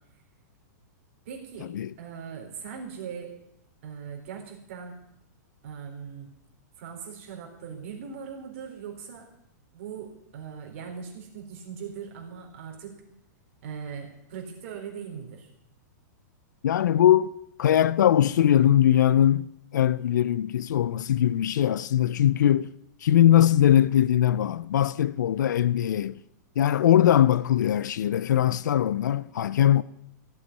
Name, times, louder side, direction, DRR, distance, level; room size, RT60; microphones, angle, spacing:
voice 1, 1.3-3.3 3.8-5.0 5.6-6.3 6.8-9.3 9.7-13.0 13.6-15.5, right 7 dB, 45° right, 4.0 m, -40 dB
voice 2, 16.6-17.3 17.6-22.7 23.0-26.2 26.6-29.8, left 11 dB, 75° left, 0.6 m, -21 dB
15.5 x 8.4 x 9.4 m
supercardioid pair, 170°, 10 cm